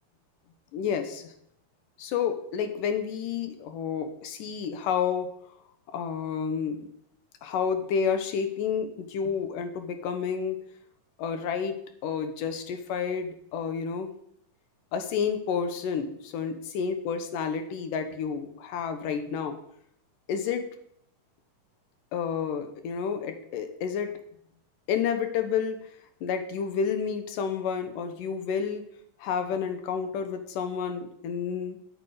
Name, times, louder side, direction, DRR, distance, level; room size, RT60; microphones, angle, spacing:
voice 1, 0.7-1.3 2.0-5.3 5.9-6.8 7.4-10.6 11.2-11.8 12.0-14.1 14.9-19.6 20.3-20.7 22.1-24.1 24.9-25.8 26.2-28.9 29.2-31.8, left 6 dB, 80° left, 8 dB, 2.6 m, -30 dB
12.5 x 7.4 x 4.9 m, 0.71 s
omnidirectional pair, 3.8 m